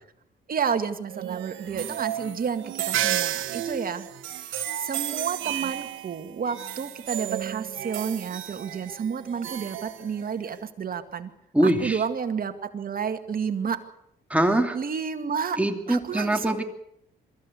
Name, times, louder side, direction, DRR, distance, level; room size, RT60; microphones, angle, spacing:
voice 1, 0.5-4.1 4.3-11.3 11.6-13.8 14.7-15.6 15.9-16.6, right 6 dB, 45° right, 8 dB, 2.0 m, -30 dB
sound 1, 1.1-10.6, right 12 dB, 85° right, 1.5 m, -32 dB
voice 2, 11.5-12.0 14.3-14.8 15.6-16.6, right 1 dB, 5° right, 4 dB, 2.8 m, -23 dB
23.5 x 14.5 x 8.4 m, 0.78 s
cardioid pair, 90°, 20 cm